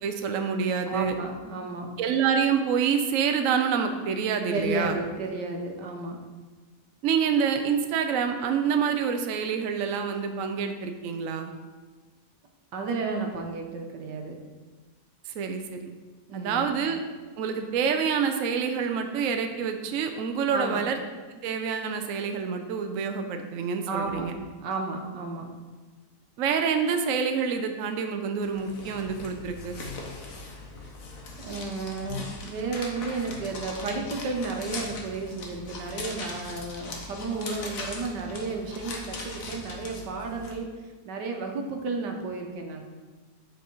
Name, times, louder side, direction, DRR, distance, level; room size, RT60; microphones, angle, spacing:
voice 1, 0.0-1.1 2.0-5.0 7.0-11.5 15.3-15.9 16.3-17.0 17.4-21.0 21.3-24.3 26.4-29.7, right 6 dB, 60° right, 5 dB, 0.9 m, -27 dB
voice 2, 0.9-1.9 4.5-6.3 12.7-14.4 16.3-16.7 20.5-20.8 23.9-25.5 31.4-42.8, right 3 dB, 90° right, 3 dB, 1.6 m, -33 dB
sound 1, 28.4-40.5, left 3 dB, 55° left, 1.4 m, -40 dB
9.5 x 4.8 x 4.6 m, 1.4 s
omnidirectional pair, 1.8 m